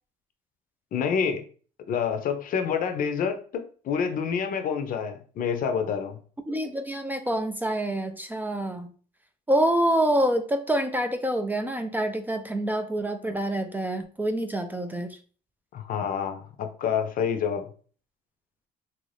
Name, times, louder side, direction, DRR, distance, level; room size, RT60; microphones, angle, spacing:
voice 1, 0.9-1.4 1.9-6.2 15.7-17.7, left 7 dB, 55° left, 7 dB, 0.6 m, -28 dB
voice 2, 6.5-8.9 9.5-15.2, right 1 dB, 10° right, 7 dB, 0.3 m, -26 dB
3.0 x 2.6 x 3.2 m, 0.41 s
cardioid pair, 110°, 17 cm